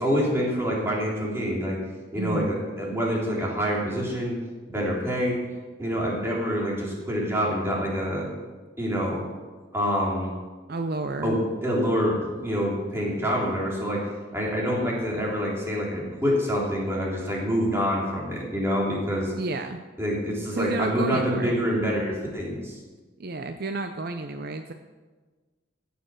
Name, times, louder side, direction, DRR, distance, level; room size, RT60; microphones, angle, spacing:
voice 1, 0.0-1.8 2.1-4.4 4.7-5.3 5.8-8.3 8.8-9.2 9.7-10.3 11.2-14.0 14.3-19.3 20.0-22.8, equal, 15° right, -4 dB, 3.4 m, -26 dB
voice 2, 2.2-2.5 10.7-11.4 19.4-19.8 20.5-21.5 23.2-24.7, right 3 dB, 55° right, 7 dB, 0.6 m, -31 dB
15.5 x 7.0 x 6.3 m, 1.3 s
head